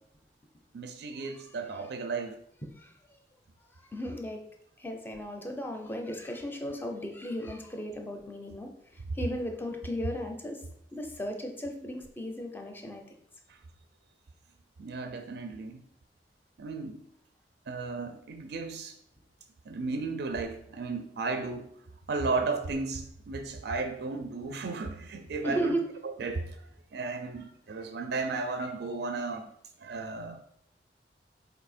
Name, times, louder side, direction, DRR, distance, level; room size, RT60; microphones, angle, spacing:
voice 1, 0.7-2.4 14.8-15.8 16.6-17.0 17.7-18.9 19.7-21.7 22.1-25.8 26.2-26.7 26.9-29.5 29.8-30.4, right 3 dB, 65° right, 7 dB, 0.4 m, -34 dB
voice 2, 3.7-4.4 4.8-10.6 10.9-13.0 25.4-25.8, equal, 10° left, 3 dB, 0.6 m, -35 dB
4.3 x 2.8 x 4.2 m, 0.71 s
head